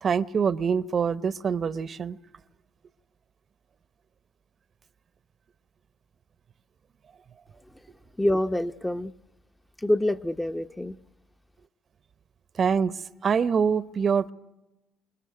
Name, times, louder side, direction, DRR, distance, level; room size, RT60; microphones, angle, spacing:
voice 1, 0.0-2.2 12.6-12.9 13.2-14.3, right 6 dB, 45° right, 0.8 m, -24 dB
voice 2, 8.2-9.1 9.8-11.0, left 1 dB, 10° left, 0.8 m, -26 dB
28.0 x 20.5 x 9.3 m
supercardioid pair, 65°, 0 cm